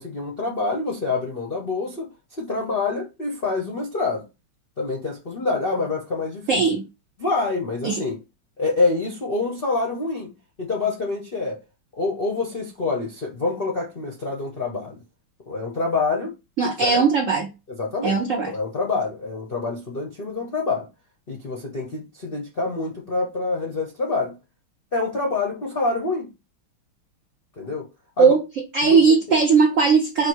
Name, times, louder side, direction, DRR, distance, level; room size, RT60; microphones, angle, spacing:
voice 1, 0.0-2.1 2.4-4.2 4.8-6.6 7.2-8.2 8.6-10.3 10.6-11.6 11.9-15.0 15.5-16.4 16.8-17.0 17.8-18.2 18.5-20.9 21.3-24.3 24.9-26.3 27.6-27.9 28.2-28.3 28.8-29.0, left 3 dB, 60° left, 0.5 m, -26 dB
voice 2, 6.5-6.8 7.8-8.0 16.6-17.5 18.0-18.5 28.2-28.4 28.7-30.3, right 5 dB, 85° right, 0.7 m, -18 dB
5.5 x 2.0 x 4.5 m
omnidirectional pair, 2.3 m